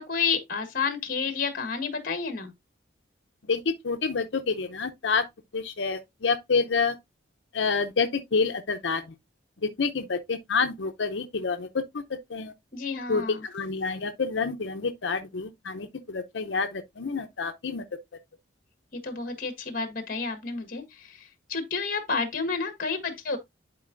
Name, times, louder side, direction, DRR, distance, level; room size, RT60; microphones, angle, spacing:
voice 1, 0.0-2.5 12.7-13.4 19.0-20.8 21.5-23.4, left 5 dB, 45° left, 1.5 m, -30 dB
voice 2, 3.5-5.2 5.5-7.0 7.5-9.0 9.6-12.5 13.1-17.8, left 4 dB, 70° left, 0.6 m, -28 dB
10.5 x 4.4 x 2.5 m
head